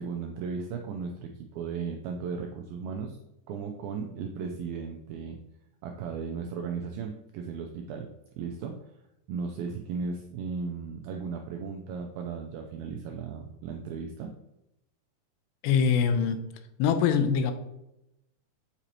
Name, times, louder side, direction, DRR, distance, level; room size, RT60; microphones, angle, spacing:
voice 1, 0.0-3.2 3.5-5.4 5.8-8.1 8.4-8.8 9.3-14.3, right 5 dB, 90° right, 3 dB, 2.1 m, -36 dB
voice 2, 15.6-16.4 16.8-17.5, left 6 dB, 85° left, 9 dB, 2.7 m, -23 dB
8.2 x 5.0 x 2.9 m, 0.88 s
omnidirectional pair, 4.9 m